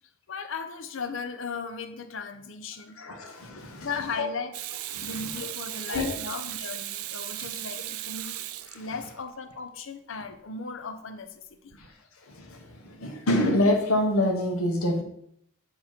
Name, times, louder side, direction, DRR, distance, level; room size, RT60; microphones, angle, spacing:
voice 1, 0.3-3.0 3.5-4.6 5.0-8.4 8.7-11.8, left 5 dB, 60° left, 8 dB, 0.6 m, -37 dB
voice 2, 3.0-3.9 4.2-4.3 4.9-5.5 5.9-6.2 8.7-8.8 12.3-15.0, left 1 dB, 85° left, 3 dB, 1.2 m, -26 dB
Water tap faucet / Sink (filling or washing), 4.5-9.3 11.7-11.9, right 13 dB, 85° right, 0.4 m, -37 dB
7.3 x 3.1 x 5.8 m, 0.70 s
head